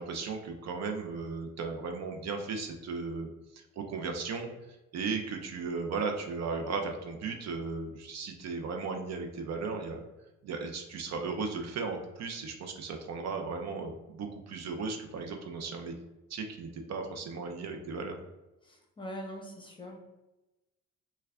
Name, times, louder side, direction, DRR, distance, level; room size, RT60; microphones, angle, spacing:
voice 1, 0.0-3.3 3.5-4.5 4.9-10.0 10.4-15.9 16.3-18.2, right 4 dB, 60° right, 4 dB, 0.5 m, -36 dB
voice 2, 18.6-20.0, equal, 15° left, -1 dB, 0.8 m, -42 dB
3.3 x 2.2 x 3.4 m, 1.0 s
cardioid pair, 90°, 30 cm